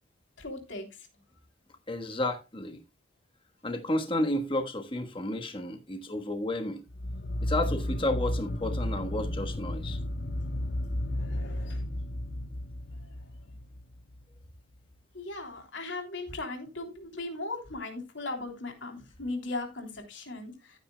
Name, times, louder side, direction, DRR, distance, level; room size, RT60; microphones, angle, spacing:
voice 1, 0.4-0.8 11.1-11.8 15.1-20.8, left 2 dB, 65° left, 3.3 m, -38 dB
voice 2, 1.9-2.8 3.6-6.8 7.4-10.0, left 1 dB, 25° left, 1.3 m, -31 dB
sound 1, 6.9-14.2, left 1 dB, 45° left, 0.6 m, -33 dB
15.0 x 9.1 x 2.2 m
head